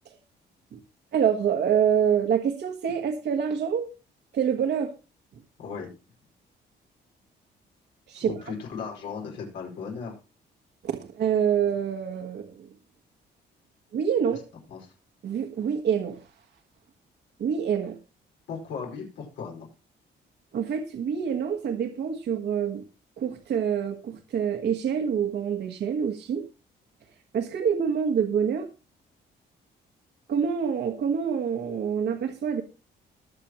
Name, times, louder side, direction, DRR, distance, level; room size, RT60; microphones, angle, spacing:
voice 1, 1.1-3.9 4.3-4.9 8.1-8.5 10.8-12.7 13.9-14.4 15.2-16.3 17.4-18.0 20.5-22.8 23.2-26.4 27.3-28.7 30.3-32.6, right 7 dB, 65° right, 4 dB, 1.5 m, -26 dB
voice 2, 8.2-10.2 14.7-14.9 18.5-19.7, left 5 dB, 85° left, -1 dB, 5.4 m, -36 dB
21.0 x 7.0 x 3.0 m, 0.29 s
cardioid pair, 110°, 18 cm